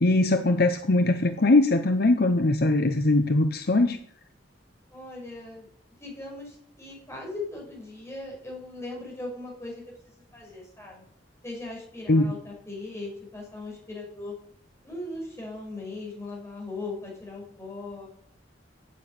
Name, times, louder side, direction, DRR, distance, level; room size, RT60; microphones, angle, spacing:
voice 1, 0.0-4.0 12.1-12.2, left 2 dB, 60° left, 8 dB, 0.8 m, -21 dB
voice 2, 4.9-5.7 6.0-11.0 11.4-14.4 14.8-18.1, left 2 dB, 15° left, -2 dB, 5.6 m, -39 dB
9.5 x 8.6 x 8.8 m, 0.66 s
head